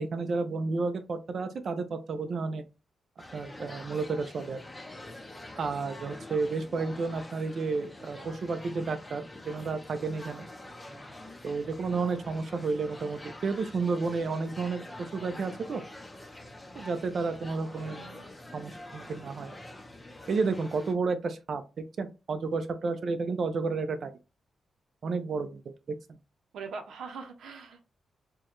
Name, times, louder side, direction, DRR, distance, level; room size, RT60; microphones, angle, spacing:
voice 1, 0.0-2.6 3.3-4.6 5.6-10.5 11.4-15.8 16.8-18.1 18.5-19.6 20.3-21.6 22.0-24.1 25.0-25.6 25.9-26.0, right 4 dB, 50° right, 0.5 m, -31 dB
sound 1, 3.2-20.9, left 1 dB, 10° left, 0.6 m, -46 dB
voice 2, 17.7-18.3 26.5-27.9, right 5 dB, 90° right, 0.7 m, -43 dB
4.5 x 2.2 x 3.0 m
wide cardioid pair, 160°, 0 cm